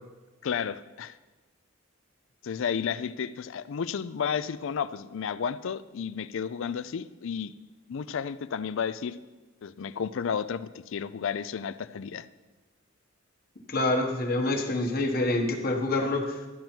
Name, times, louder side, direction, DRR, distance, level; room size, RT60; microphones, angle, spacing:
voice 1, 0.4-1.2 2.4-7.5 7.9-9.2 9.6-12.2, left 7 dB, 65° left, 15 dB, 0.4 m, -32 dB
voice 2, 13.7-16.4, left 2 dB, 50° left, 3 dB, 1.3 m, -26 dB
12.5 x 9.1 x 4.4 m, 1.2 s
head